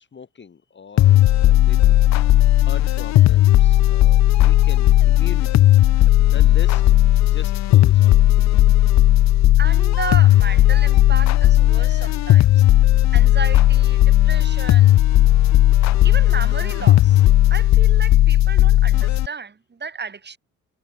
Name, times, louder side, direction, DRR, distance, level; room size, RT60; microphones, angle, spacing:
voice 1, 0.0-2.0 2.6-5.7 6.2-8.7, left 6 dB, 40° left, 2.6 m, -40 dB
sound 1, 1.0-19.3, left 14 dB, 65° left, 0.6 m, -15 dB
voice 2, 9.6-12.6 13.1-15.1 15.8-17.2 17.5-20.4, right 5 dB, 35° right, 7.6 m, -33 dB
cardioid pair, 90°, 30 cm